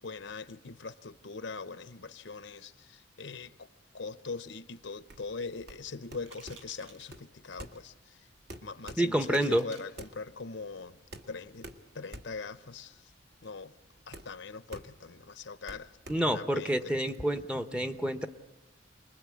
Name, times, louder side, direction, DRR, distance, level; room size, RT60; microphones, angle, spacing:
voice 1, 0.0-3.7 3.9-8.3 8.6-11.0 11.3-11.7 11.9-13.1 13.4-13.7 14.1-15.9 16.3-16.9, left 4 dB, 65° left, 0.8 m, -42 dB
sound 1, 5.0-17.2, right 1 dB, 50° right, 1.5 m, -50 dB
sound 2, 6.2-7.1 7.5-7.9 8.5-8.6 9.1-10.1, right 4 dB, 85° right, 4.1 m, -54 dB
voice 2, 9.0-9.6 16.1-18.3, right 1 dB, 5° right, 0.8 m, -28 dB
28.5 x 21.0 x 8.5 m
head